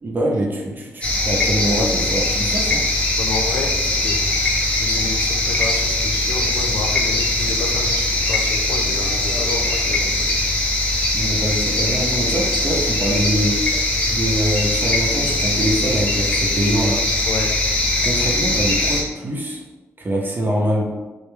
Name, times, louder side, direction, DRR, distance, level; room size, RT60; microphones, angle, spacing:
voice 1, 0.0-2.8 11.1-13.5 14.1-17.0 18.0-19.6 20.0-20.9, right 1 dB, 35° right, -2 dB, 0.6 m, -23 dB
sound 1, 1.0-19.0, left 2 dB, 25° left, 0.7 m, -21 dB
voice 2, 3.2-4.3 4.7-10.3 17.3-17.6, left 3 dB, 80° left, 3 dB, 0.3 m, -30 dB
2.2 x 2.1 x 3.1 m, 1.2 s
cardioid pair, 75°, 5 cm